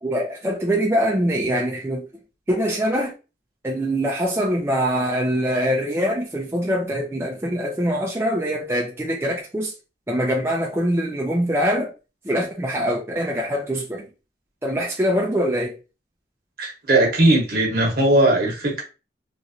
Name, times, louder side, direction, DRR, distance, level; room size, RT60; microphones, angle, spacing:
voice 1, 0.0-2.1 2.5-3.1 3.6-9.7 10.1-11.9 12.2-14.1 14.6-15.8, equal, 15° right, 0.5 m, -23 dB
voice 2, 16.6-18.8, right 1 dB, 55° right, 1.1 m, -18 dB
3.1 x 2.6 x 2.7 m
head